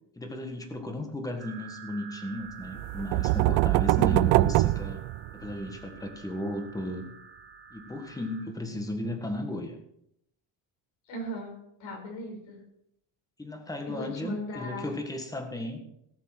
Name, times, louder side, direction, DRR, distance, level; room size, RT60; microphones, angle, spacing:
voice 1, 0.1-5.0 5.3-7.1 7.7-9.8 13.4-15.8, left 1 dB, 5° left, 5 dB, 1.5 m, -35 dB
sound 1, 1.4-8.4, right 6 dB, 25° right, 1.9 m, -48 dB
sound 2, 2.8-5.7, right 19 dB, 85° right, 0.5 m, -23 dB
voice 2, 3.9-4.3 11.1-12.6 13.9-14.9, right 1 dB, 75° left, 2 dB, 5.3 m, -37 dB
17.5 x 7.4 x 5.9 m, 0.77 s
cardioid pair, 170°, 47 cm